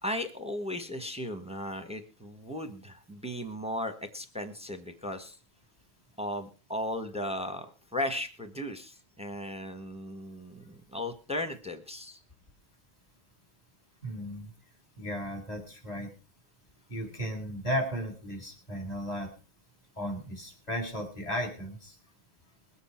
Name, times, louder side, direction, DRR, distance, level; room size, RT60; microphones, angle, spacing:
voice 1, 0.0-5.4 6.2-7.7 7.9-12.2, left 1 dB, 5° right, 8 dB, 1.4 m, -36 dB
voice 2, 14.0-14.5 15.0-16.1 16.9-19.3 20.0-21.9, equal, 30° left, 2 dB, 3.6 m, -35 dB
21.5 x 8.1 x 4.5 m, 0.32 s
omnidirectional pair, 1.3 m